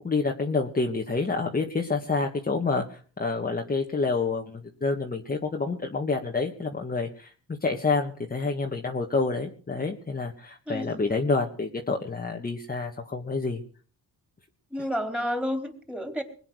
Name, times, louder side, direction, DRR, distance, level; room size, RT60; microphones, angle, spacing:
voice 1, 0.0-7.3 7.6-13.6, left 3 dB, 25° left, 1 dB, 1.6 m, -28 dB
voice 2, 14.7-16.2, equal, 5° right, 6 dB, 3.9 m, -30 dB
21.0 x 9.0 x 6.4 m, 0.42 s
cardioid pair, 105°, 36 cm